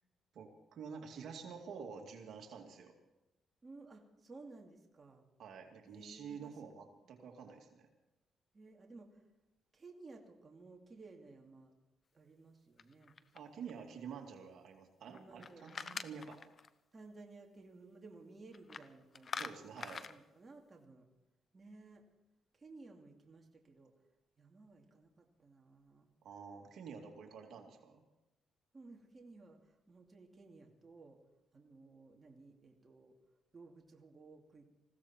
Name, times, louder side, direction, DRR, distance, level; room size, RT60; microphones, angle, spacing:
voice 1, 0.3-2.9 5.4-7.9 13.3-16.4 19.3-20.0 26.2-28.0, right 6 dB, 65° right, 2 dB, 2.4 m, -49 dB
voice 2, 3.6-5.2 5.8-7.1 8.5-9.2 9.7-11.7 12.1-13.7 15.1-16.4 16.9-19.5 20.1-21.1 21.5-22.0 22.5-23.9 24.4-26.1 28.7-31.2 31.5-33.2 33.5-34.6, right 3 dB, 30° right, 1 dB, 2.5 m, -57 dB
sound 1, 12.8-13.7 15.1-16.7 18.5-18.9 19.1-20.2, left 5 dB, 45° left, 0.9 m, -45 dB
20.0 x 16.0 x 4.4 m, 0.96 s
cardioid pair, 90°, 0 cm